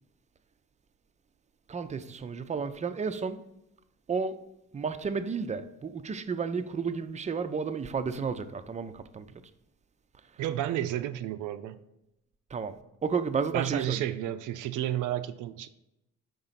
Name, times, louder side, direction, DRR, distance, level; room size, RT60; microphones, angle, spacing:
voice 1, 1.7-3.4 4.1-4.4 4.7-9.3 12.5-14.1, right 5 dB, 25° right, 0.4 m, -32 dB
voice 2, 10.4-11.8 13.5-15.7, right 12 dB, 80° right, 0.5 m, -31 dB
5.2 x 3.9 x 5.7 m
cardioid pair, 90°, 30 cm